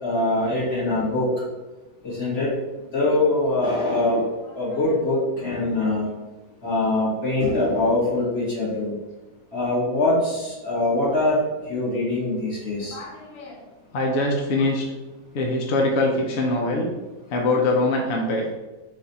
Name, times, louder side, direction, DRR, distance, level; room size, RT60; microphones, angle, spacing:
voice 1, 0.0-1.3 2.0-2.5 2.9-4.2 4.5-6.0 6.6-8.9 9.5-11.4 11.7-13.0, left 2 dB, 45° left, -8 dB, 1.8 m, -23 dB
voice 2, 12.8-13.6 13.9-14.8 15.3-16.9 17.3-18.5, left 2 dB, 65° left, 0 dB, 0.7 m, -23 dB
4.1 x 2.4 x 4.0 m, 1.1 s
omnidirectional pair, 1.7 m